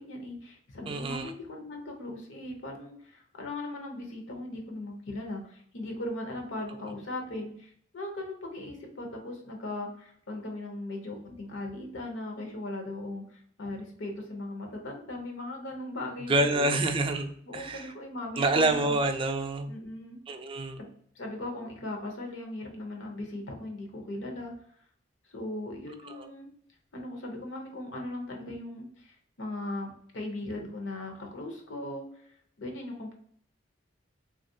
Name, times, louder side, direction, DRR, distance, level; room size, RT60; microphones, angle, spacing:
voice 1, 0.0-16.8 17.5-19.0 19.7-20.2 20.8-20.9 21.1-24.5 25.3-26.5 26.9-32.1 32.6-33.1, left 2 dB, 90° left, 2 dB, 0.8 m, -38 dB
voice 2, 0.9-1.3 16.3-17.9 18.4-19.7 20.3-20.8 26.0-26.3, right 2 dB, 30° right, 6 dB, 0.3 m, -27 dB
3.2 x 2.4 x 2.6 m, 0.62 s
head